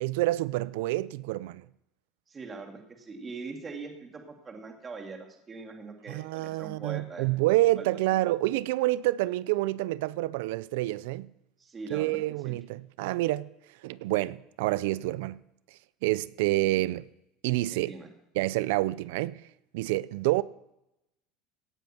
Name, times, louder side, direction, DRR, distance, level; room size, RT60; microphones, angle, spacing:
voice 1, 0.0-1.7 6.1-11.3 11.9-13.5 13.8-15.4 16.0-17.1 17.4-17.9 18.4-19.4 19.7-20.4, right 18 dB, 80° right, 0.5 m, -28 dB
voice 2, 2.3-7.3 7.8-7.9 11.6-12.2 12.4-12.5 17.7-18.1, right 4 dB, 25° right, 2.4 m, -42 dB
17.0 x 9.0 x 6.1 m
supercardioid pair, 125°, 0 cm